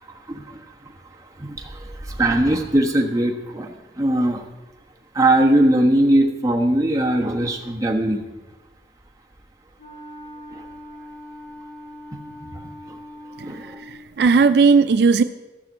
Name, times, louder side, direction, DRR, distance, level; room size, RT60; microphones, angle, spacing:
voice 1, 0.1-4.5 5.1-8.2 10.5-10.7 12.4-12.5 12.9-13.0 13.4-13.8, right 1 dB, 20° right, 0 dB, 1.2 m, -21 dB
Wind instrument woodwind instrument, 9.8-14.0, left 1 dB, 70° left, 3.7 m, -41 dB
voice 2, 13.4-15.2, right 4 dB, 65° right, 10 dB, 0.4 m, -17 dB
15.0 x 5.9 x 7.3 m, 1.1 s
head